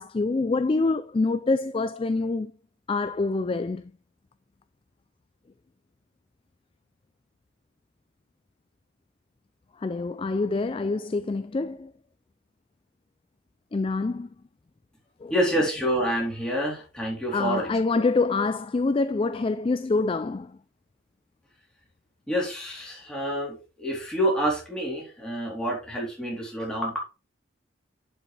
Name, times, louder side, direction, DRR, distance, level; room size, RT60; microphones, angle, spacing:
voice 1, 0.0-2.5 2.9-3.9 9.8-11.9 13.7-14.3 15.2-15.3 17.3-20.6, left 3 dB, 25° left, 0.3 m, -26 dB
voice 2, 15.3-18.0 22.3-27.0, equal, 5° left, 3.6 m, -28 dB
11.0 x 5.7 x 3.3 m
head